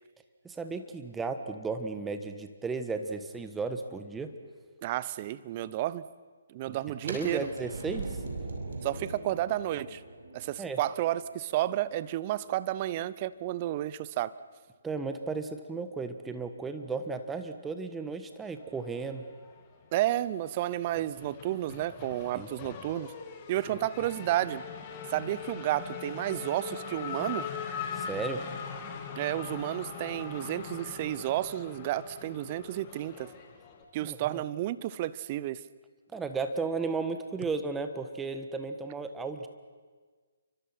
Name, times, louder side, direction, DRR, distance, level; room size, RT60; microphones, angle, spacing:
voice 1, 0.4-4.3 6.7-6.8 7.1-8.2 10.6-10.8 14.8-19.2 22.3-22.5 27.9-28.4 34.0-34.4 36.1-39.5, right 4 dB, 10° right, 8 dB, 1.5 m, -34 dB
voice 2, 4.8-6.1 6.5-7.5 8.8-10.0 10.3-14.4 19.9-23.1 23.5-24.6 25.1-27.5 29.1-33.3 33.9-35.6, right 14 dB, 35° right, 17 dB, 0.8 m, -31 dB
sound 1, 7.0-12.8, right 3 dB, 65° right, 5.9 m, -41 dB
Race car auto racing / Accelerating revving vroom, 18.8-19.8 20.2-33.8, left 6 dB, 30° left, 2.9 m, -41 dB
29.5 x 24.5 x 5.9 m, 1.5 s
figure-of-eight pair, 140°, 0 cm